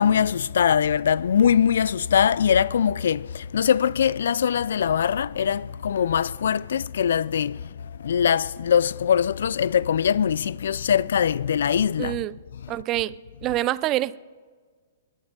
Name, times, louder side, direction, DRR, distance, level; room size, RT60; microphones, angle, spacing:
voice 1, 0.0-7.6 8.0-12.1, left 8 dB, 75° left, 0.3 m, -22 dB
voice 2, 12.0-12.4 12.7-13.1 13.4-14.2, right 15 dB, 25° right, 0.3 m, -26 dB
20.0 x 11.0 x 5.3 m
hypercardioid pair, 145°, 0 cm